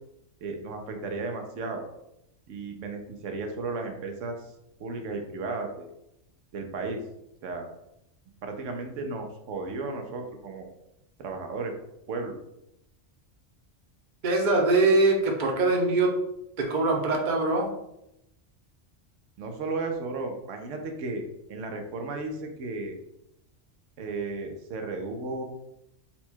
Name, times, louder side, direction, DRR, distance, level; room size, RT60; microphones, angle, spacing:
voice 1, 0.4-1.8 2.5-4.5 4.8-5.9 6.5-7.0 7.4-7.7 8.4-10.7 11.2-11.7 12.1-12.4 19.4-23.0 24.0-25.4, right 3 dB, 85° right, 4 dB, 1.0 m, -34 dB
voice 2, 14.2-16.1 16.6-17.7, right 2 dB, 45° right, 1 dB, 0.8 m, -23 dB
4.2 x 2.2 x 4.3 m, 0.82 s
omnidirectional pair, 1.3 m